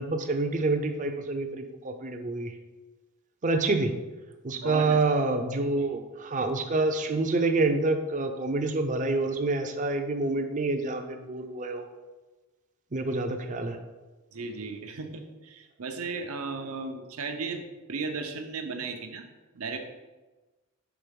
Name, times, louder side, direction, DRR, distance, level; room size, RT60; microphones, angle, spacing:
voice 1, 0.0-2.5 3.4-4.0 4.4-11.9 12.9-13.8, right 3 dB, 35° right, 6 dB, 0.6 m, -27 dB
voice 2, 4.5-5.0 5.8-5.9 14.3-19.2 19.5-19.8, right 4 dB, 80° right, 5 dB, 0.8 m, -35 dB
6.0 x 4.0 x 5.2 m, 1.2 s
head